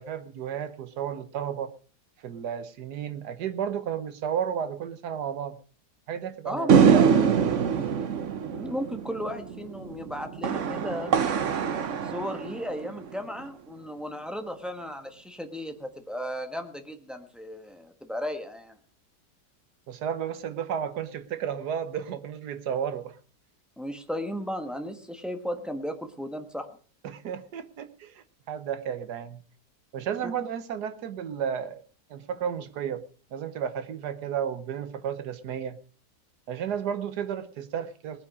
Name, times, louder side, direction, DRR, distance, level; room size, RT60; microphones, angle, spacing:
voice 1, 0.0-1.7 2.2-5.6 6.1-7.2 19.9-23.2 27.0-29.4 29.9-31.8 32.1-33.0 33.3-35.8 36.5-38.3, right 8 dB, 75° right, 11 dB, 1.6 m, -32 dB
voice 2, 6.4-7.0 8.5-11.1 12.0-18.8 23.8-26.7 30.2-30.3, equal, ahead, 5 dB, 1.2 m, -35 dB
sound 1, 6.7-13.2, right 7 dB, 55° right, 1.1 m, -24 dB
19.5 x 9.7 x 4.9 m, 0.42 s
omnidirectional pair, 1.8 m